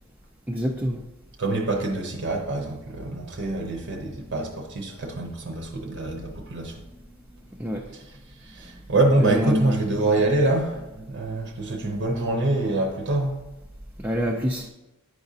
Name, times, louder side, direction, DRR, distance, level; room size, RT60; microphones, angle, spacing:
voice 1, 0.5-1.0 7.6-7.8 8.7-8.8 9.2-9.8 14.0-14.7, equal, 10° right, 0.4 m, -26 dB
voice 2, 1.4-6.8 7.9-8.0 8.4-13.4, right 2 dB, 55° right, 0.7 m, -25 dB
9.4 x 4.8 x 2.7 m
head